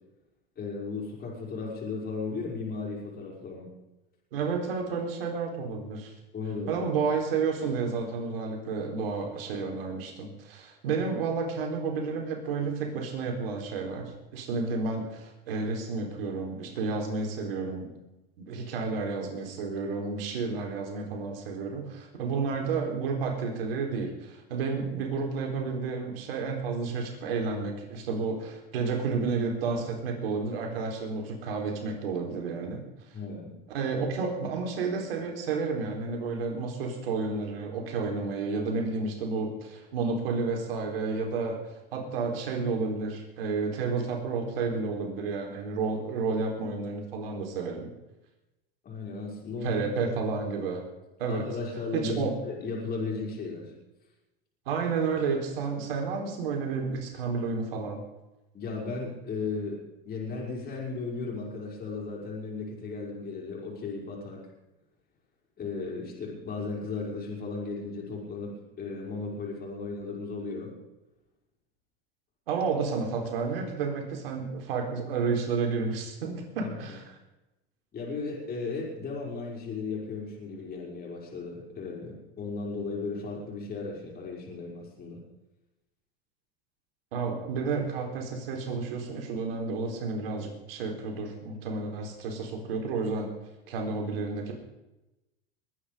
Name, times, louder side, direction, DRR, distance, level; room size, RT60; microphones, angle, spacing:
voice 1, 0.6-3.7 6.3-6.9 33.1-33.5 48.8-49.8 51.3-53.7 58.5-59.8 60.0-64.4 65.6-70.7 76.6-77.0 77.9-85.2, left 4 dB, 30° left, -3 dB, 5.7 m, -35 dB
voice 2, 4.3-6.1 6.7-17.9 18.4-32.8 33.7-41.6 41.9-47.9 49.6-50.8 51.2-51.4 51.9-52.3 54.7-58.0 72.5-77.2 87.1-93.3 93.7-94.5, right 4 dB, 80° right, 2 dB, 4.2 m, -31 dB
21.5 x 9.6 x 5.2 m, 0.98 s
supercardioid pair, 110°, 29 cm